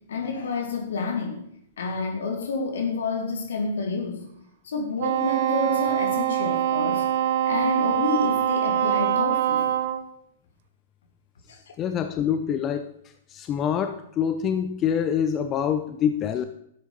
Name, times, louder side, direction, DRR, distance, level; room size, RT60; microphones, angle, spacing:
voice 1, 0.1-1.4 1.8-4.2 4.6-7.1 7.4-9.7 11.5-11.6, left 4 dB, 70° left, 3 dB, 3.0 m, -29 dB
Wind instrument woodwind instrument, 5.0-10.0, right 11 dB, 50° right, 1.2 m, -24 dB
voice 2, 11.8-12.9 13.3-16.4, left 8 dB, 30° left, 9 dB, 0.8 m, -25 dB
12.0 x 8.1 x 5.3 m, 0.73 s
hypercardioid pair, 115°, 0 cm